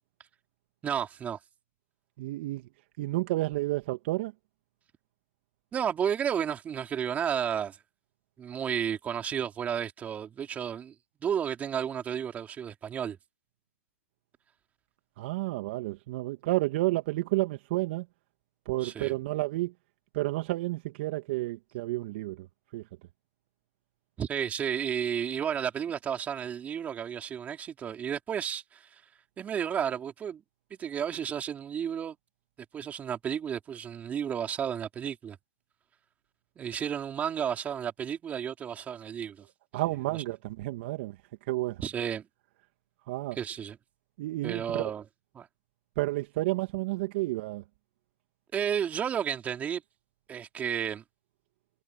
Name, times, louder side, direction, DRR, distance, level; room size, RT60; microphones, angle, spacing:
voice 1, 0.8-1.4 5.7-7.8 8.4-10.9 11.2-13.2 18.8-19.1 24.2-28.9 29.4-30.4 30.8-32.2 32.7-35.4 36.6-39.5 41.8-42.3 43.3-43.8 44.4-45.0 45.3-45.5 48.5-49.8 50.3-51.0, right 8 dB, 20° right, 4.1 m, -32 dB
voice 2, 2.2-2.7 3.0-4.3 15.2-18.1 18.7-19.7 20.1-22.5 22.7-22.8 39.7-41.2 41.5-41.8 43.1-43.4 44.2-44.8 46.0-47.6, right 19 dB, 50° right, 2.2 m, -31 dB
hypercardioid pair, 130°, 8 cm